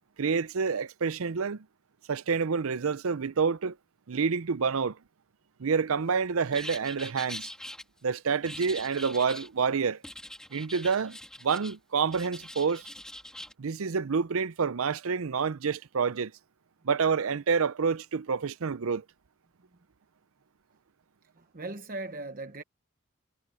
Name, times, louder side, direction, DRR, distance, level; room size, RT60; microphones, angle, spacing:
voice 1, 0.2-1.6 2.1-3.8 4.1-5.0 5.6-7.5 8.0-10.0 10.5-12.9 13.6-16.3 16.8-19.0, right 5 dB, 70° right, 0.6 m, -28 dB
sound 1, 6.5-7.8 8.4-9.5 10.0-11.8 12.1-13.5, left 1 dB, 5° left, 2.1 m, -43 dB
voice 2, 21.3-22.6, right 2 dB, 40° right, 1.1 m, -39 dB
head